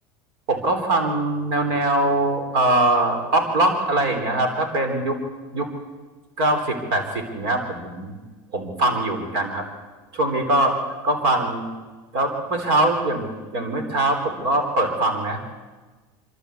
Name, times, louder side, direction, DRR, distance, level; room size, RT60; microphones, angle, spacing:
voice 1, 0.5-5.2 5.5-5.7 6.4-8.2 8.5-9.7 10.1-10.8 11.0-11.7 12.1-15.4, right 1 dB, 80° right, 5 dB, 3.8 m, -22 dB
26.5 x 13.5 x 8.4 m, 1.3 s
supercardioid pair, 110°, 12 cm